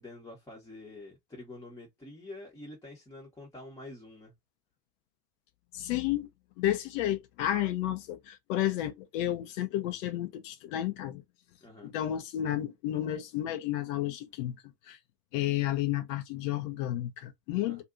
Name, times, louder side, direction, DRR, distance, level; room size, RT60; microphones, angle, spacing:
voice 1, 0.0-4.3 11.6-11.9 17.6-17.8, left 2 dB, 5° left, 1.0 m, -47 dB
voice 2, 5.7-6.3 6.6-11.2 11.8-14.6 14.9-15.0 15.3-17.8, left 13 dB, 50° left, 0.8 m, -31 dB
2.6 x 2.6 x 2.4 m
figure-of-eight pair, 70°, 49 cm